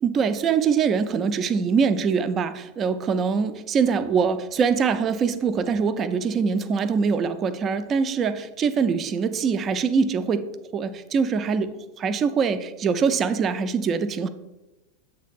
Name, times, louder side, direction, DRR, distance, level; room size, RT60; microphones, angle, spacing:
voice 1, 0.0-14.3, right 6 dB, 30° right, 11 dB, 0.4 m, -23 dB
7.4 x 3.2 x 4.2 m, 1.0 s
figure-of-eight pair, 90°, 0 cm